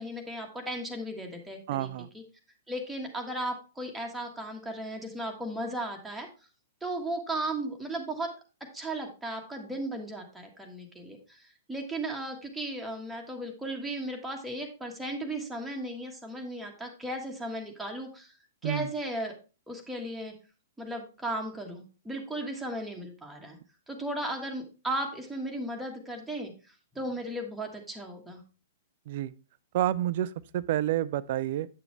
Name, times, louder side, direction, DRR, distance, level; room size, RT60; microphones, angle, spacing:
voice 1, 0.0-2.2 2.7-6.3 6.8-8.3 8.7-18.3 18.6-19.3 19.7-20.3 20.8-23.6 23.9-26.5 26.9-28.4, right 1 dB, 5° right, 1.5 m, -36 dB
voice 2, 1.7-2.1 18.6-18.9 29.1-29.3 29.7-31.7, right 12 dB, 45° right, 0.4 m, -29 dB
8.5 x 6.9 x 3.2 m
figure-of-eight pair, 110°, 0 cm